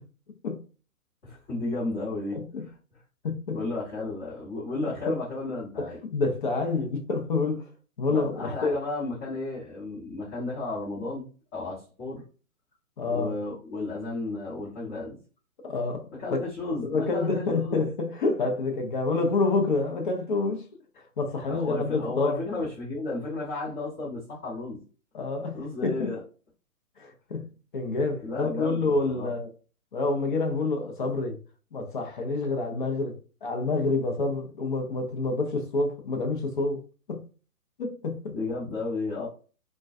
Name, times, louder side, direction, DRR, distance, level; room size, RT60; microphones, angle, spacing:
voice 1, 1.2-2.4 3.5-6.0 8.1-11.2 11.5-12.2 13.1-15.2 16.2-17.8 21.5-24.8 25.5-26.2 28.2-29.3 38.3-39.3, left 2 dB, 20° left, 1.0 m, -33 dB
voice 2, 2.3-2.6 3.2-3.6 5.1-5.2 5.8-7.6 8.0-8.8 13.0-13.3 15.6-16.4 16.8-20.6 21.2-22.4 25.1-25.6 25.8-26.1 27.0-27.5 27.7-29.5 29.9-31.4 31.7-36.8 37.1-37.2 37.8-38.3, left 3 dB, 35° left, 0.6 m, -28 dB
2.2 x 2.2 x 2.5 m
hypercardioid pair, 140°, 43 cm